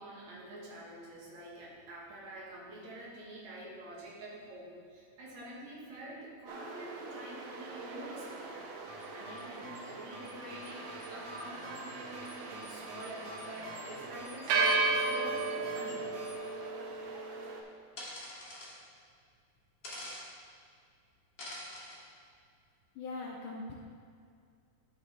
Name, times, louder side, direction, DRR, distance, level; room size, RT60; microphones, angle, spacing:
voice 1, 0.0-8.6 9.1-16.2, right 1 dB, 60° right, -4 dB, 2.6 m, -47 dB
sound 1, 6.5-17.6, right 3 dB, 80° right, 2.5 m, -36 dB
sound 2, 8.8-16.4, equal, 45° right, 1.7 m, -50 dB
sound 3, 18.0-18.7 19.8-20.2 21.4-22.0, left 1 dB, 40° left, 2.0 m, -44 dB
voice 2, 23.0-23.7, left 3 dB, 75° left, -2 dB, 2.1 m, -40 dB
12.5 x 5.9 x 3.2 m, 2.3 s
omnidirectional pair, 3.9 m